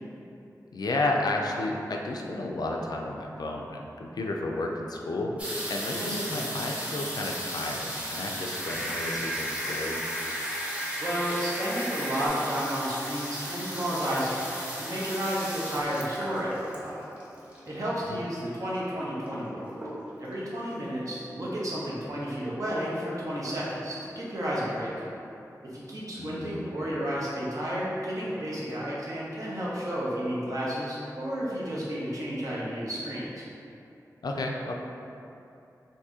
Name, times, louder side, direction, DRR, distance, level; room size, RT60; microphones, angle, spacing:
voice 1, 0.7-5.4 5.7-10.0 18.1-18.3 26.2-26.7 34.2-34.8, left 2 dB, 75° left, 0 dB, 0.3 m, -32 dB
sound 1, 5.4-17.9 18.7-18.8 19.0-19.4 19.7-20.3 20.9-21.0 21.1-21.2, equal, 20° right, 0.8 m, -36 dB
voice 2, 6.0-6.4 11.0-17.1 17.7-19.6 20.2-24.9 25.7-33.5, equal, 55° right, -7 dB, 0.9 m, -32 dB
sound 2, 8.3-12.3, equal, ahead, 0.4 m, -35 dB
2.7 x 2.6 x 3.6 m, 2.8 s
wide cardioid pair, 60°, 7 cm